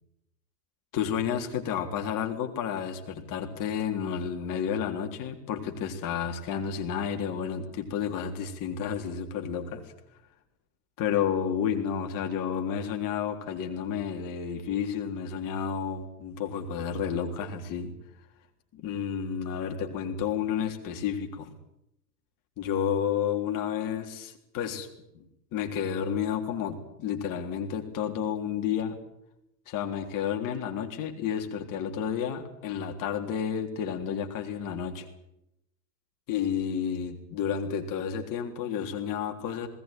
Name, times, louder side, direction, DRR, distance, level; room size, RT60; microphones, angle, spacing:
voice 1, 0.9-9.8 11.0-17.9 18.7-21.5 22.6-24.9 25.1-25.3 25.5-29.0 29.7-35.1 36.3-39.7, left 8 dB, 40° left, 4 dB, 3.7 m, -31 dB
20.0 x 18.0 x 9.3 m, 0.82 s
figure-of-eight pair, 90°, 50 cm